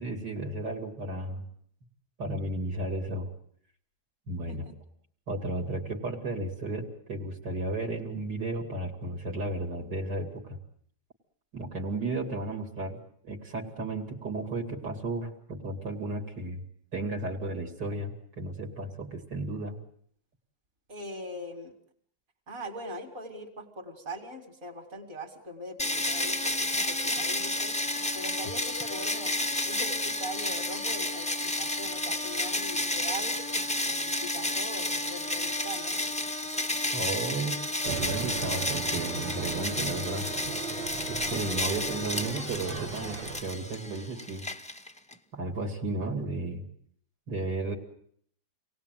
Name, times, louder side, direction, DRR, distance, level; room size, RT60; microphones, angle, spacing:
voice 1, 0.0-1.4 2.2-3.3 4.3-4.7 5.3-10.6 11.5-13.0 13.2-16.6 16.9-19.8 36.9-37.6 37.8-40.3 41.1-44.5 45.3-46.6 47.3-47.8, right 2 dB, 65° right, 1 dB, 3.2 m, -34 dB
voice 2, 20.9-21.7 22.5-29.3 29.6-36.0 42.2-42.6, equal, 40° right, 3 dB, 3.2 m, -41 dB
sound 1, 25.8-45.1, left 1 dB, 10° left, 0.3 m, -31 dB
sound 2, 37.8-43.4, right 8 dB, 90° right, 2.3 m, -38 dB
27.0 x 18.5 x 9.2 m, 0.65 s
omnidirectional pair, 2.0 m